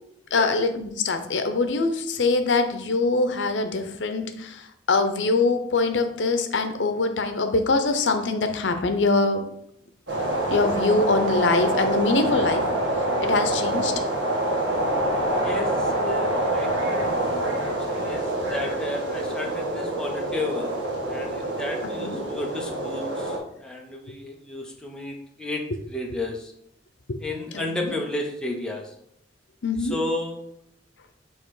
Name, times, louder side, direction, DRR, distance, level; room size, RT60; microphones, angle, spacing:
voice 1, 0.3-9.5 10.5-12.6 13.2-13.9 22.0-22.2 27.1-27.2 27.5-27.9 29.6-30.0, left 3 dB, 85° left, 7 dB, 0.7 m, -23 dB
sound 1, 10.1-23.4, right 1 dB, 80° right, 1.5 m, -26 dB
voice 2, 15.4-20.7 21.1-26.5 27.2-28.9 29.8-30.4, left 2 dB, 5° left, -1 dB, 0.9 m, -33 dB
6.5 x 3.1 x 4.8 m, 0.72 s
head